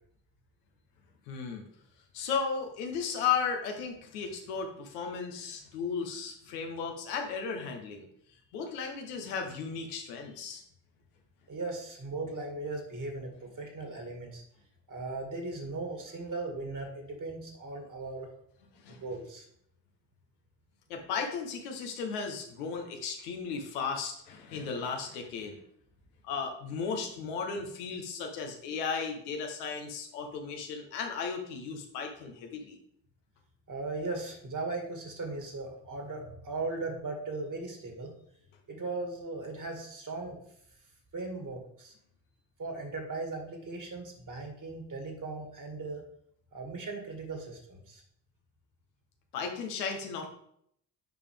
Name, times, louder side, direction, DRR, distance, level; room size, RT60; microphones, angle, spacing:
voice 1, 1.3-1.7 2.1-8.1 8.5-10.6 18.8-19.0 20.9-25.6 26.2-32.8 49.3-50.3, left 6 dB, 90° left, 3 dB, 1.1 m, -35 dB
voice 2, 11.5-14.4 14.9-18.3 18.9-19.4 33.7-38.1 38.7-40.4 41.1-41.9 42.6-46.0 46.5-48.0, right 3 dB, 40° right, 3 dB, 2.3 m, -38 dB
8.2 x 4.9 x 3.5 m, 0.68 s
hypercardioid pair, 50°, 46 cm